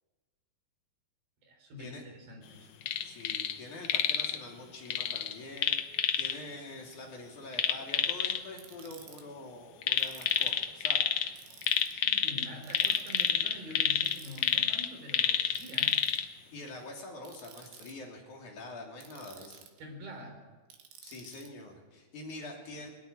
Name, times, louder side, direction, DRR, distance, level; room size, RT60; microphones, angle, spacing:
voice 1, 1.4-2.7 11.9-16.0 19.8-20.4, equal, 60° right, 2 dB, 5.8 m, -46 dB
sound 1, 2.8-3.5 3.8-4.4 4.9-6.3 7.5-8.4 9.8-11.3 11.6-16.2 16.7-16.8, left 9 dB, 75° left, 1.6 m, -28 dB
voice 2, 3.0-11.1 16.5-19.6 21.0-22.9, left 2 dB, 50° left, 0 dB, 4.1 m, -45 dB
Ratchet pawl, 8.6-9.2 10.0-10.6 11.4-12.0 12.6-13.3 14.1-14.6 15.6-16.2 17.2-17.9 19.0-19.8 20.7-21.5, right 8 dB, 90° right, 3.9 m, -52 dB
21.0 x 13.0 x 9.8 m, 1.3 s
omnidirectional pair, 4.6 m